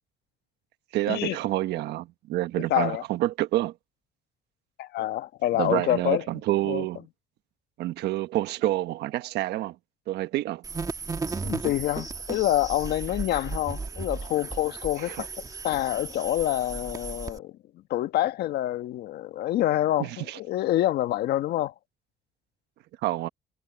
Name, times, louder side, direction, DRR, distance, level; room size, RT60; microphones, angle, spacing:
voice 1, 0.9-3.7 5.6-7.0 7.8-9.7 10.1-10.6 15.1-15.2 20.0-20.4 23.0-23.3, right 15 dB, 80° right, 1.2 m, -28 dB
voice 2, 2.7-3.0 4.8-6.3 6.6-6.9 11.4-17.6 17.9-21.7, left 14 dB, 70° left, 1.4 m, -27 dB
sound 1, 10.6-17.4, right 4 dB, 20° right, 1.6 m, -35 dB
cardioid pair, 110°, 17 cm